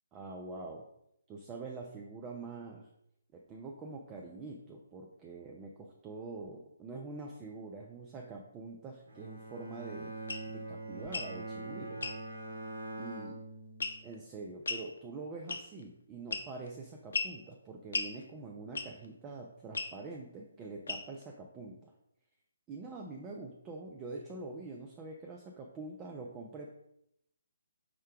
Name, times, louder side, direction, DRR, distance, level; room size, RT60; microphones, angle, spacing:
voice 1, 0.1-0.9 1.3-2.9 3.3-12.1 13.0-13.4 14.0-21.9 22.7-26.7, right 3 dB, 15° right, 0 dB, 0.4 m, -45 dB
Bowed string instrument, 9.1-14.3, right 2 dB, 65° right, 1.1 m, -43 dB
sound 1, 10.3-10.5 11.0-11.3 12.0-12.2 13.8-14.1 14.7-14.9 15.5-15.8 16.3-16.7 17.1-17.4 17.9-18.1 18.8-19.1 19.7-19.9 20.9-21.2, left 3 dB, 60° left, 0.4 m, -36 dB
5.0 x 2.2 x 4.5 m, 0.77 s
figure-of-eight pair, 140°, 0 cm